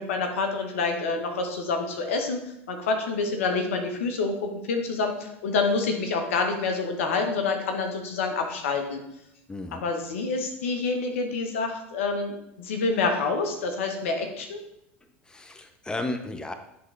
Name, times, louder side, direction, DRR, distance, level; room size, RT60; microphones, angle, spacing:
voice 1, 0.0-9.0 9.8-14.6, left 4 dB, 75° left, 4 dB, 1.1 m, -27 dB
voice 2, 9.5-9.8 15.3-16.5, left 2 dB, 10° left, 7 dB, 0.6 m, -33 dB
10.0 x 3.7 x 3.3 m, 0.82 s
hypercardioid pair, 85°, 7 cm